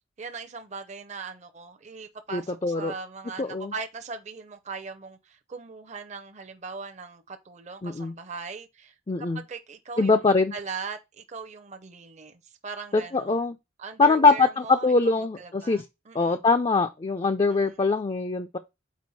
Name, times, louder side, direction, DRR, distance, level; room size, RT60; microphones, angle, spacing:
voice 1, 0.2-13.4 13.8-16.4 17.4-17.8, right 4 dB, 35° right, 0.6 m, -40 dB
voice 2, 2.3-2.9 3.4-3.7 7.8-8.1 9.1-9.4 10.0-10.5 12.9-13.5 14.0-15.8 16.1-18.6, left 3 dB, 25° left, 0.4 m, -23 dB
6.2 x 4.5 x 4.1 m
head